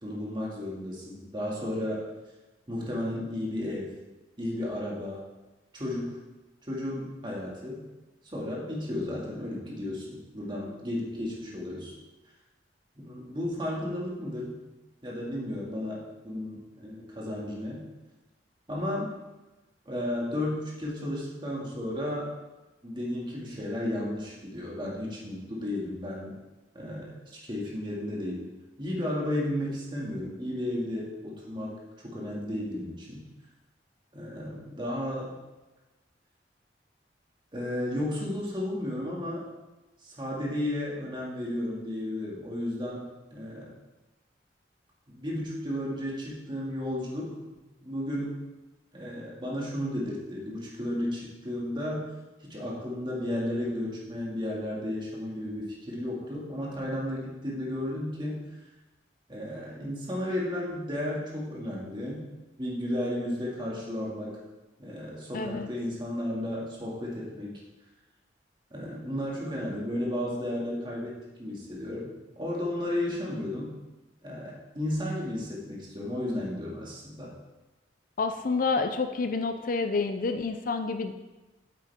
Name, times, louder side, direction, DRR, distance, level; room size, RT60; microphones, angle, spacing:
voice 1, 0.0-2.0 2.7-3.9 4.4-5.3 5.7-6.2 6.7-7.8 8.2-11.9 13.0-14.7 15.0-17.8 18.7-19.1 19.9-22.3 22.8-26.3 26.7-28.4 28.8-31.7 32.0-33.2 34.1-35.3 37.5-39.5 40.0-43.7 45.1-47.3 47.8-48.4 48.9-52.1 52.4-58.4 59.3-62.3 62.6-64.4 64.8-67.6 68.7-72.1 72.4-73.7 74.2-77.3, left 1 dB, 25° right, -4 dB, 2.2 m, -33 dB
voice 2, 65.3-65.7 78.2-81.1, left 4 dB, 50° left, 8 dB, 0.5 m, -28 dB
8.4 x 8.3 x 3.6 m, 1.1 s
head